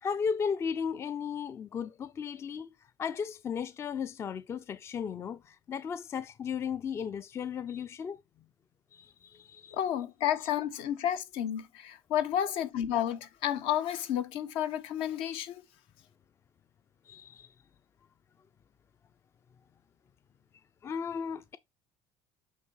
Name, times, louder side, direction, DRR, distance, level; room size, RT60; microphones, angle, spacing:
voice 1, 0.0-2.7 3.0-8.2 8.9-9.8 17.1-17.5 20.8-21.6, left 6 dB, 30° left, 0.4 m, -35 dB
voice 2, 9.7-15.6, left 10 dB, 75° left, 0.9 m, -31 dB
8.1 x 2.8 x 4.5 m
cardioid pair, 125°, 9 cm